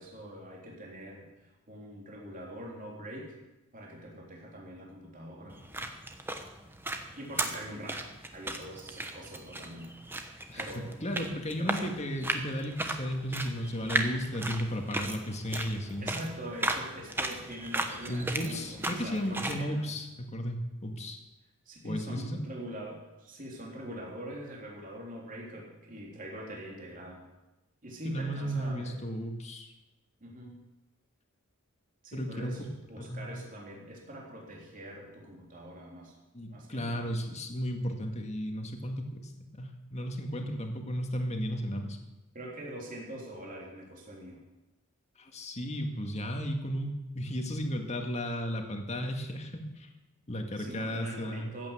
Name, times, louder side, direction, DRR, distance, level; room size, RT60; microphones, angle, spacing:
voice 1, 0.0-3.3 3.7-5.6 7.1-8.0 8.3-10.9 11.6-11.9 16.0-19.9 21.6-27.2 27.8-29.0 30.2-30.6 32.0-36.1 36.5-37.1 42.3-44.4 50.6-51.7, equal, 40° right, -3 dB, 3.3 m, -43 dB
sound 1, 5.5-19.6, right 2 dB, 10° right, 1.1 m, -36 dB
voice 2, 10.5-16.2 18.1-21.2 21.8-22.4 28.0-29.7 32.1-33.3 36.3-42.0 45.2-49.9 50.3-51.5, equal, 30° left, 4 dB, 1.9 m, -34 dB
14.5 x 8.9 x 8.2 m, 1.0 s
head